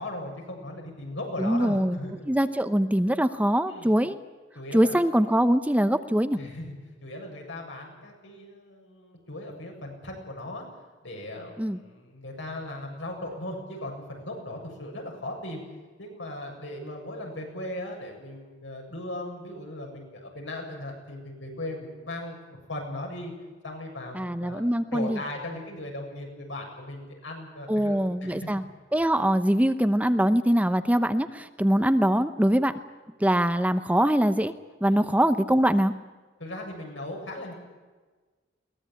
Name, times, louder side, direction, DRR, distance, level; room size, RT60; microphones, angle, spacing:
voice 1, 0.0-2.3 3.7-3.9 4.5-5.0 6.3-6.7 7.0-10.6 11.0-15.6 16.0-23.3 23.6-28.5 34.9-35.1 36.4-37.5, left 1 dB, 80° left, 1 dB, 7.6 m, -38 dB
voice 2, 1.4-2.0 2.3-4.2 4.7-6.4 11.6-11.8 24.1-25.2 27.7-28.6 28.9-32.7 33.2-34.5 34.8-35.9, equal, 10° right, 10 dB, 0.8 m, -23 dB
22.0 x 19.0 x 8.9 m, 1.3 s
head